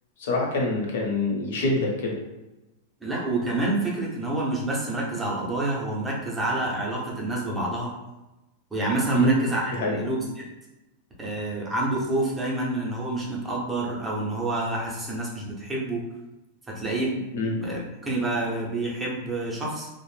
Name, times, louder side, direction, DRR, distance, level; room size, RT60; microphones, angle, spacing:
voice 1, 0.2-2.2 9.1-9.3 9.7-10.0 17.3-17.5, left 1 dB, 70° left, -1 dB, 0.8 m, -25 dB
voice 2, 3.0-7.9 8.7-10.2 11.2-16.0 16.7-17.2 17.5-19.9, right 2 dB, 10° right, -4 dB, 0.6 m, -28 dB
2.5 x 2.0 x 3.2 m, 1.0 s
supercardioid pair, 165°, 0 cm